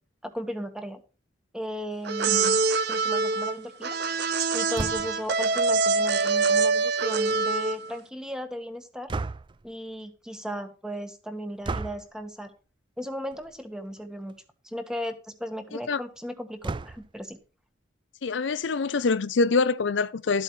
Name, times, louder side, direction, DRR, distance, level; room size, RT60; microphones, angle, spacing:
voice 1, 0.2-1.0 1.5-4.0 4.5-9.1 9.6-12.5 13.0-14.3 14.6-17.4, equal, 5° right, 1.4 m, -36 dB
sound 1, 2.0-7.9, right 4 dB, 60° right, 0.8 m, -25 dB
sound 2, 4.7-5.3 9.1-9.7 11.6-12.1 13.3-13.6 14.0-14.1 14.3-14.4 16.6-17.2, right 3 dB, 25° right, 0.4 m, -33 dB
voice 2, 18.2-20.4, left 4 dB, 70° left, 0.5 m, -25 dB
12.5 x 8.3 x 3.2 m
head